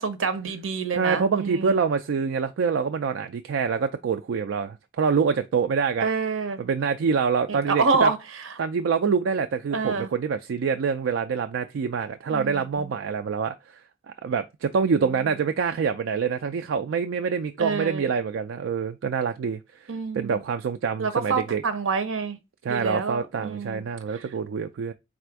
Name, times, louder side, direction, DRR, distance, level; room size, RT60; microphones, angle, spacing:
voice 1, 0.0-1.8 6.0-6.6 7.5-8.5 9.7-10.1 12.3-12.9 17.6-18.0 19.9-20.4 21.0-22.4 22.7-23.8 24.1-24.2, right 4 dB, 85° right, 0.8 m, -27 dB
voice 2, 0.9-6.1 6.6-8.1 8.6-13.8 14.2-21.6 22.6-24.9, right 6 dB, 70° right, 0.3 m, -26 dB
4.2 x 2.5 x 4.5 m
head